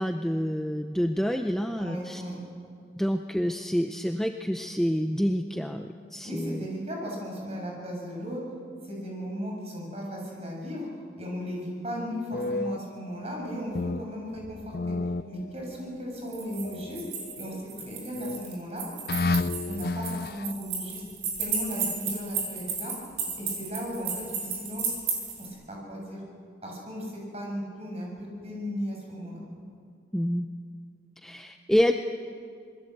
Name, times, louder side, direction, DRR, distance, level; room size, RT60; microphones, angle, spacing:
voice 1, 0.0-2.2 3.0-6.7 30.1-30.5 31.2-31.9, equal, 5° left, 5 dB, 0.6 m, -27 dB
voice 2, 1.8-2.4 6.2-8.4 8.8-10.9 11.2-14.6 14.9-15.0 15.3-17.0 17.4-18.9 19.7-21.0 21.4-22.9 23.3-25.0 25.4-26.2 26.6-29.4, equal, 35° right, -2 dB, 7.4 m, -36 dB
sound 1, 12.3-14.1 14.3-15.9 16.6-17.6 18.1-18.6 19.1-20.5, left 3 dB, 55° left, 0.5 m, -32 dB
sound 2, 16.2-25.5, right 5 dB, 65° right, 7.7 m, -33 dB
27.0 x 21.0 x 7.9 m, 2.3 s
head